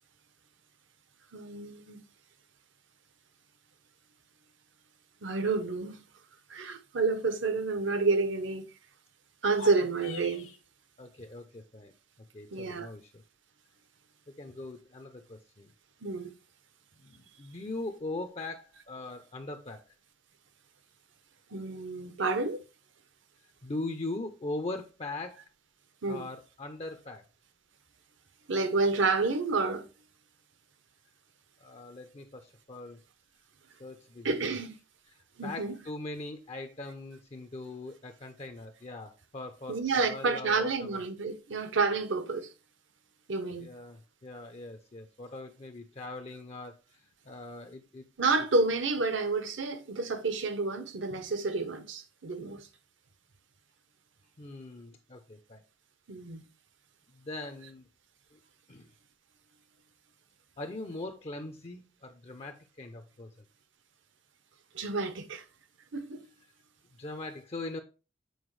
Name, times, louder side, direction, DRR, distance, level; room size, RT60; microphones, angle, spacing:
voice 1, 1.3-2.0 5.2-6.0 6.5-8.6 9.4-10.5 12.5-12.9 16.0-16.3 21.5-22.6 26.0-26.2 28.5-29.8 34.2-34.7 35.4-35.8 39.7-42.5 43.3-43.7 48.2-52.7 56.1-56.4 64.7-65.4 65.9-66.3, right 3 dB, 65° right, 0.9 m, -29 dB
sound 1, 9.4-10.6, left 5 dB, 75° left, 0.9 m, -44 dB
voice 2, 11.0-11.9 12.3-13.2 14.4-15.7 17.0-19.8 23.6-25.4 26.1-27.2 31.6-33.0 33.8-34.4 35.4-41.0 43.6-48.0 54.4-55.6 57.1-57.8 58.3-58.4 58.7-58.9 60.6-63.3 67.0-67.8, left 2 dB, 30° left, 0.5 m, -41 dB
7.9 x 4.5 x 3.2 m
head